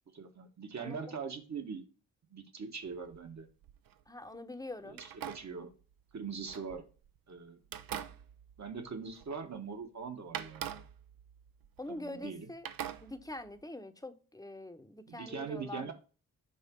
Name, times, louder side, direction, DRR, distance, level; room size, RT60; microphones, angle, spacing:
voice 1, 0.1-1.8 2.3-3.5 4.8-5.7 6.1-6.9 7.3-7.6 8.6-10.8 11.9-12.5 15.1-15.9, right 5 dB, 45° right, 6 dB, 1.3 m, -42 dB
sound 1, 2.8-4.0 4.9-7.2 7.6-9.6 9.8-9.9 10.3-12.3 12.6-13.6, right 10 dB, 65° right, 0.6 m, -45 dB
voice 2, 4.1-5.0 11.8-12.7 13.0-15.9, left 1 dB, 10° left, 8 dB, 0.9 m, -44 dB
5.4 x 3.5 x 5.1 m, 0.36 s
supercardioid pair, 50°, 38 cm